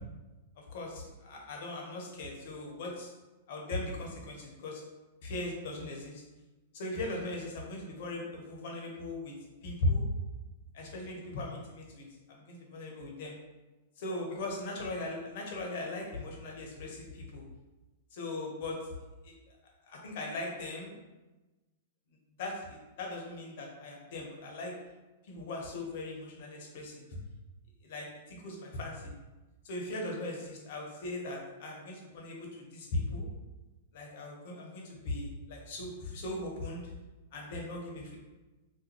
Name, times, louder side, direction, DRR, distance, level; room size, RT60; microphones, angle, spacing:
voice 1, 0.7-3.1 3.5-4.8 5.2-6.2 6.7-9.3 9.6-10.1 10.7-13.3 14.0-17.4 18.1-18.8 19.2-19.3 19.9-21.0 22.4-24.7 25.3-27.0 27.8-29.1 29.6-33.3 33.9-36.9 37.3-38.2, left 2 dB, 60° left, 0 dB, 1.0 m, -38 dB
3.8 x 2.6 x 3.0 m, 1.1 s
hypercardioid pair, 110°, 0 cm